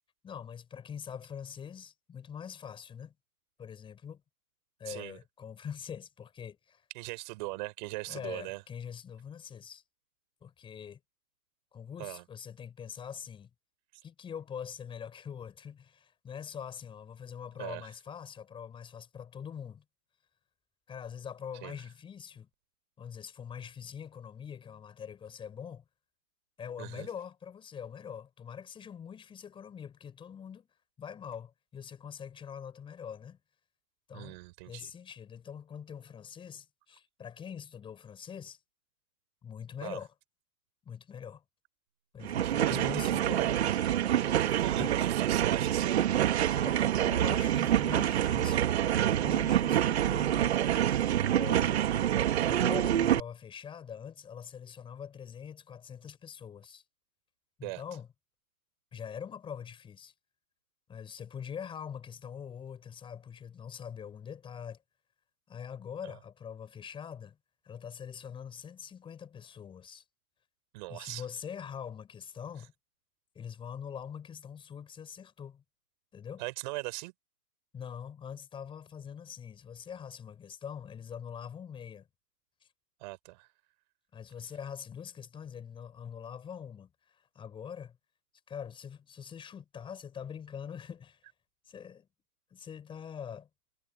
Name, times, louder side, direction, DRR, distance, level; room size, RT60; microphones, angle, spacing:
voice 1, 0.2-3.1 3.6-4.2 4.8-6.8 8.1-9.8 10.4-11.0 11.7-13.5 14.0-19.8 20.9-22.5 23.0-25.8 26.6-30.7 31.0-33.4 34.1-34.4 34.7-38.6 39.4-40.1 40.9-41.4 42.1-43.6 44.0-44.3 44.8-44.9 46.5-48.7 49.2-50.6 51.3-51.8 52.4-56.8 57.6-58.1 58.9-60.1 60.9-64.8 65.5-67.4 67.6-70.0 70.9-72.7 73.4-75.6 76.1-76.4 77.7-82.1 84.1-88.0 88.5-91.2 91.7-92.1 92.5-93.5, left 7 dB, 10° left, 5.3 m, -43 dB
voice 2, 4.9-5.2 6.9-8.6 12.0-12.2 17.6-17.9 21.6-21.8 26.8-27.1 34.1-34.9 39.8-40.0 42.4-43.6 44.6-46.5 57.6-57.8 66.0-66.1 70.7-71.2 76.4-77.1 83.0-83.5, right 23 dB, 30° right, 5.2 m, -40 dB
sound 1, 42.2-53.2, right 11 dB, 45° right, 2.0 m, -27 dB
hypercardioid pair, 140°, 44 cm